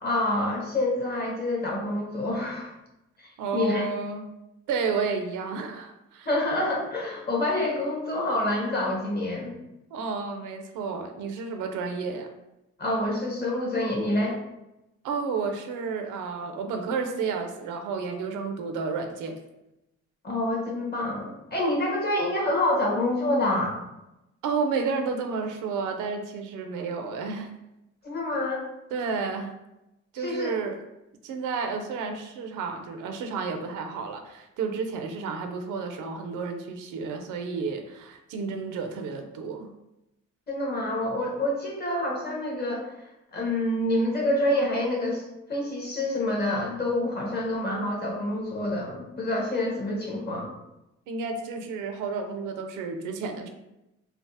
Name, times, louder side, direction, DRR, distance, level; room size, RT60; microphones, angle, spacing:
voice 1, 0.0-2.7 3.5-3.8 6.3-9.6 12.8-14.4 20.2-23.8 28.0-28.7 30.2-30.5 40.5-42.9 43.3-45.2 45.5-50.5, left 1 dB, 35° left, -2 dB, 0.9 m, -27 dB
voice 2, 3.4-4.3 4.7-6.3 9.9-12.3 15.0-19.4 24.4-27.5 28.9-29.5 30.1-30.8 31.2-39.7 51.1-53.5, right 5 dB, 85° right, 5 dB, 0.5 m, -31 dB
3.3 x 2.0 x 2.6 m, 0.91 s
cardioid pair, 90°, 30 cm